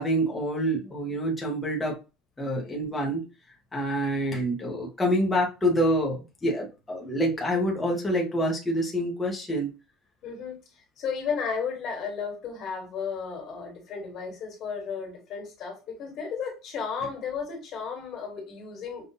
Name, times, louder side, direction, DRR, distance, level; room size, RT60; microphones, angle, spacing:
voice 1, 0.0-2.0 2.4-3.3 3.7-9.7, equal, 10° left, 0.9 m, -27 dB
voice 2, 10.2-19.0, left 6 dB, 40° left, 1.8 m, -34 dB
5.4 x 2.5 x 2.6 m
cardioid pair, 165°, 0 cm